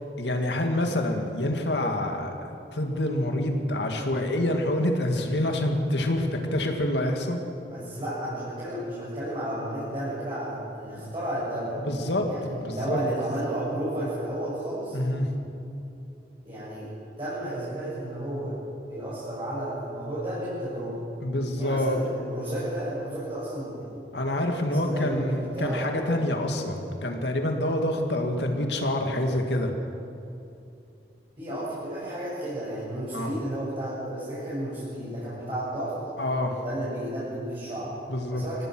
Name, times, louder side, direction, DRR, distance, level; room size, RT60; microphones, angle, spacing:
voice 1, 0.2-7.4 11.0-11.1 11.9-13.0 14.9-15.3 21.2-22.0 24.1-29.7 33.1-33.3 36.2-36.6 38.1-38.4, left 1 dB, 80° left, 3 dB, 2.1 m, -27 dB
voice 2, 7.7-15.0 16.4-16.9 17.2-18.6 18.8-21.0 21.6-24.2 24.6-25.9 31.4-36.0 36.6-37.9 38.3-38.6, right 1 dB, 30° right, -9 dB, 6.7 m, -32 dB
25.0 x 18.0 x 6.2 m, 2.7 s
head